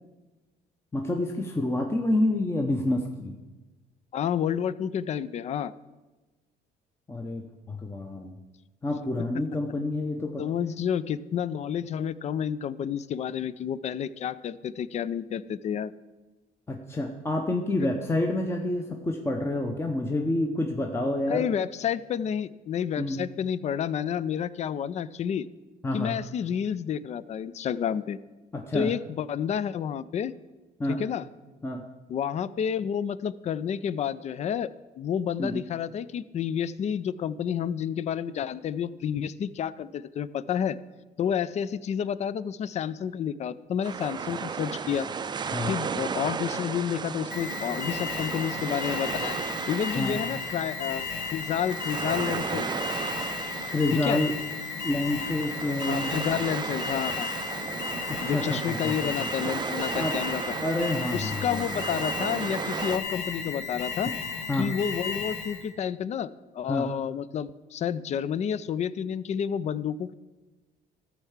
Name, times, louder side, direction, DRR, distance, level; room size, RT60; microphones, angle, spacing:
voice 1, 0.9-3.4 7.1-8.4 8.8-10.4 16.7-21.5 23.0-23.2 25.8-26.2 28.5-28.9 30.8-31.0 31.6-31.8 35.4-35.6 45.5-45.7 50.0-50.2 53.7-54.3 54.8-56.1 58.1-59.3 59.9-60.2 60.6-61.6 64.5-64.7 66.7-66.9, left 1 dB, 15° left, 3 dB, 0.8 m, -28 dB
voice 2, 4.1-5.7 9.2-9.3 10.4-15.9 21.3-25.5 25.9-28.2 28.7-30.3 30.9-31.2 32.1-34.7 35.0-40.8 41.2-45.1 45.7-49.4 49.7-52.7 53.9-54.2 55.9-57.3 58.2-60.5 61.1-64.1 64.5-70.1, left 8 dB, 40° left, 17 dB, 0.4 m, -30 dB
sound 1, 43.8-63.0, right 6 dB, 25° right, 0.4 m, -35 dB
Alarm, 47.3-65.7, left 5 dB, 70° left, 3.4 m, -34 dB
13.5 x 4.7 x 7.2 m, 1.2 s
cardioid pair, 110°, 17 cm